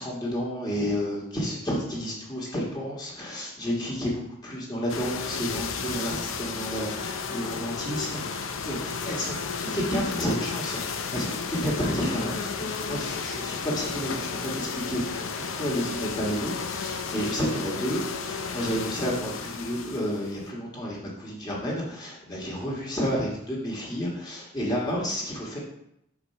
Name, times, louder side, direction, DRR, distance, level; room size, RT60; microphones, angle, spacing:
voice 1, 0.0-25.6, equal, 20° left, -5 dB, 1.4 m, -31 dB
sound 1, 4.9-20.5, left 5 dB, 80° left, 0.6 m, -33 dB
4.9 x 4.3 x 5.7 m, 0.77 s
head